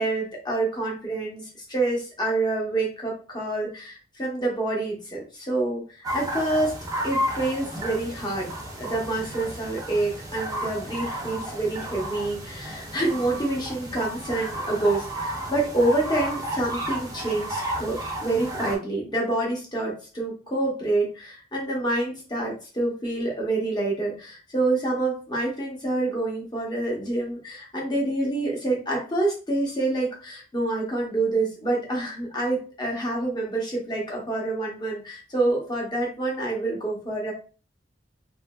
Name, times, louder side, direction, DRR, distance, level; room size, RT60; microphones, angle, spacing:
voice 1, 0.0-6.8 7.0-8.5 8.8-37.3, right 2 dB, 25° left, -2 dB, 0.8 m, -27 dB
sound 1, 6.0-18.8, right 1 dB, 20° right, 0.5 m, -32 dB
2.9 x 2.4 x 2.3 m, 0.38 s
head